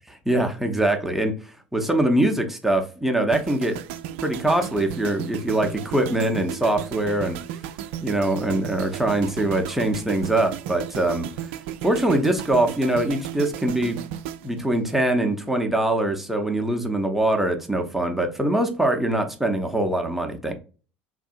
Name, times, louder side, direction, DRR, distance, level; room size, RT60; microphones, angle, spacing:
voice 1, 0.3-1.4 1.7-3.8 4.2-7.4 8.0-11.3 11.8-14.1 14.4-20.5, right 1 dB, 5° right, 0.7 m, -23 dB
sound 1, 3.3-15.5 15.8-16.1, right 11 dB, 60° right, 0.3 m, -35 dB
3.6 x 2.6 x 2.4 m
figure-of-eight pair, 75°, 7 cm